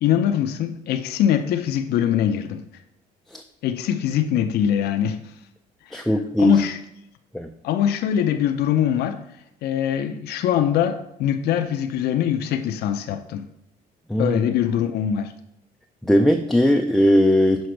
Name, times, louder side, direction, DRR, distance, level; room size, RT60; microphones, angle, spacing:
voice 1, 0.0-2.6 3.6-5.2 6.4-6.8 7.6-9.2 9.6-13.5 14.2-15.3, left 9 dB, 70° left, 0.6 m, -22 dB
voice 2, 5.9-6.6 7.3-7.5 14.1-14.4 16.0-17.7, equal, ahead, 0.4 m, -18 dB
6.5 x 5.0 x 4.5 m
cardioid pair, 110°, 17 cm